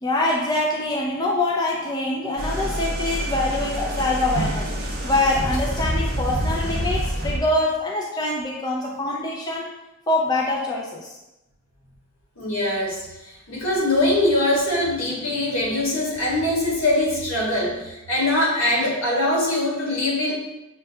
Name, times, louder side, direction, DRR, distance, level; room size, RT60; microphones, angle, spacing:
voice 1, 0.0-4.7 5.0-9.7 10.1-11.2, left 2 dB, 20° left, -3 dB, 0.3 m, -24 dB
sound 1, 2.4-7.4, equal, 45° right, 0.7 m, -27 dB
voice 2, 12.4-13.0 13.5-20.3, left 1 dB, 75° left, -5 dB, 1.4 m, -22 dB
6.4 x 2.2 x 2.6 m, 0.99 s
head